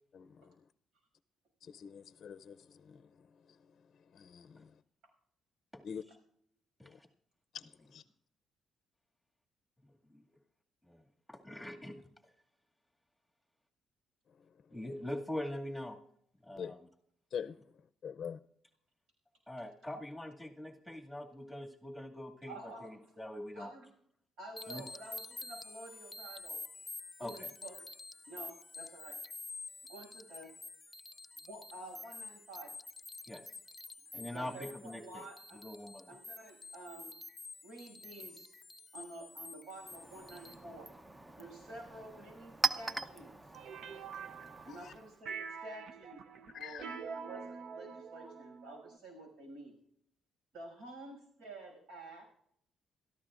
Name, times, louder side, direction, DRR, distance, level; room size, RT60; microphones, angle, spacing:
voice 1, 0.1-0.5 1.6-3.6 4.1-4.7 5.8-6.0 6.8-7.0 7.5-8.0 16.5-16.8 17.3-17.6 18.0-18.4 44.6-44.9 46.5-46.8, left 7 dB, 55° left, 10 dB, 0.5 m, -45 dB
voice 2, 11.3-12.0 14.7-16.0 16.4-16.8 19.5-23.7 24.7-24.8 27.2-27.5 33.3-33.4 34.1-35.3 35.5-36.1, left 1 dB, ahead, 0 dB, 2.1 m, -43 dB
voice 3, 22.5-23.0 23.5-23.9 24.4-26.6 27.2-27.9 28.3-29.2 29.9-30.5 31.4-32.7 34.1-35.6 36.1-37.1 37.6-38.5 38.9-40.9 41.4-43.3 44.6-46.2 46.5-49.8 50.5-52.3, right 2 dB, 85° right, 1 dB, 6.4 m, -50 dB
sound 1, 24.6-40.5, left 3 dB, 20° left, 0.7 m, -49 dB
Chink clink, 39.7-45.2, right 4 dB, 15° right, 0.7 m, -41 dB
sound 2, 43.5-45.0 45.3-49.0, right 6 dB, 70° right, 0.7 m, -45 dB
28.0 x 13.5 x 2.5 m, 0.70 s
cardioid pair, 90°, 0 cm